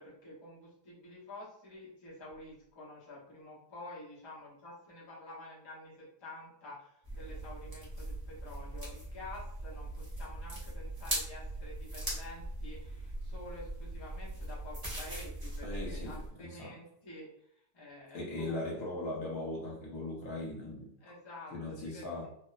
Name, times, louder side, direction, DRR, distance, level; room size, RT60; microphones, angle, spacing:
voice 1, 0.0-18.6 21.0-22.3, left 1 dB, 45° left, -6 dB, 0.3 m, -49 dB
sound 1, 7.0-16.3, right 1 dB, 25° right, 0.5 m, -40 dB
voice 2, 15.6-16.7 18.1-21.1 21.5-22.3, left 2 dB, 65° left, -2 dB, 1.2 m, -39 dB
2.8 x 2.0 x 2.3 m, 0.68 s
omnidirectional pair, 1.8 m